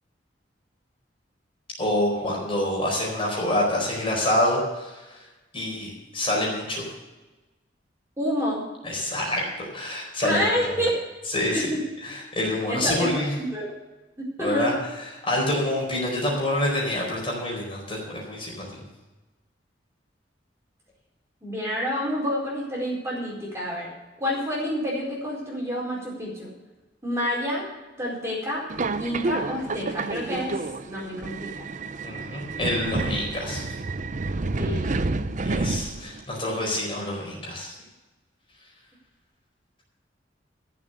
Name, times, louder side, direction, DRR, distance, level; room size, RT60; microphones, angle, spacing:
voice 1, 1.8-5.0 5.5-6.8 8.8-9.4 9.7-10.7 11.3-11.6 12.0-13.3 14.4-14.7 15.2-18.6 32.0-33.6 35.4-37.8, left 1 dB, 30° left, -2 dB, 4.5 m, -27 dB
voice 2, 8.2-8.6 10.2-10.9 11.5-11.8 12.7-13.1 13.4-13.7 14.2-14.8 21.4-23.9 24.2-26.5 27.0-27.7 28.0-28.7 29.0-30.5 30.8-31.5 34.6-35.2, equal, 15° right, -4 dB, 4.5 m, -28 dB
Subway metro underground, 28.7-36.2, right 3 dB, 45° right, 0.6 m, -29 dB
14.0 x 7.7 x 6.7 m, 1.1 s
head